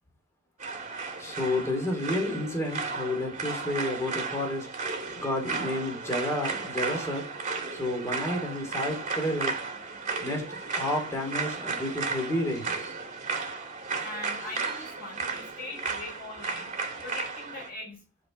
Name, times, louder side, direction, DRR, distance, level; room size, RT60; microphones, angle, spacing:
sound 1, 0.6-17.7, right 4 dB, 35° right, 2.0 m, -34 dB
voice 1, 1.2-4.7 5.2-7.3 7.7-9.5 10.2-12.7, left 1 dB, 15° left, 1 dB, 2.6 m, -31 dB
voice 2, 14.0-16.7 17.0-18.0, left 2 dB, 45° left, -1 dB, 6.5 m, -41 dB
11.0 x 4.6 x 6.2 m, 0.34 s
head